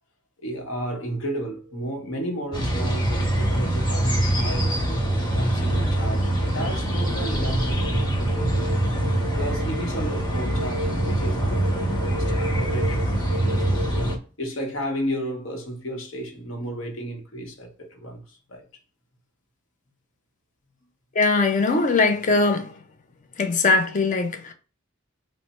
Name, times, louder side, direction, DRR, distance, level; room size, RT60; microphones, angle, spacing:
voice 1, 0.4-4.8 5.3-8.8 9.4-13.9 14.4-18.7, right 1 dB, 70° left, 1.0 m, -33 dB
sound 1, 1.1-14.2, equal, 60° right, 0.5 m, -37 dB
sound 2, 2.5-14.2, right 1 dB, 20° left, 1.1 m, -24 dB
voice 2, 21.2-22.7 23.4-24.5, left 3 dB, 40° left, 0.5 m, -21 dB
3.2 x 2.0 x 4.2 m
head